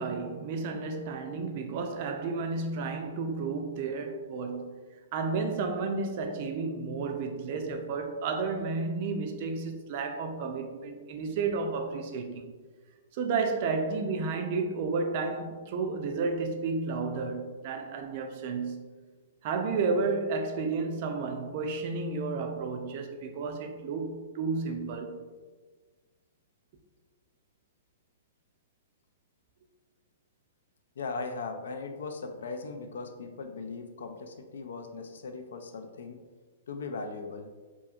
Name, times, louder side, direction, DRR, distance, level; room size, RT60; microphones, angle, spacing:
voice 1, 0.0-4.8 5.1-12.5 13.1-19.0 19.4-25.2, right 4 dB, 45° right, 0.3 m, -32 dB
voice 2, 31.0-36.2 36.7-37.5, left 4 dB, 85° left, 0.3 m, -38 dB
2.8 x 2.5 x 2.4 m
hypercardioid pair, 155°, 0 cm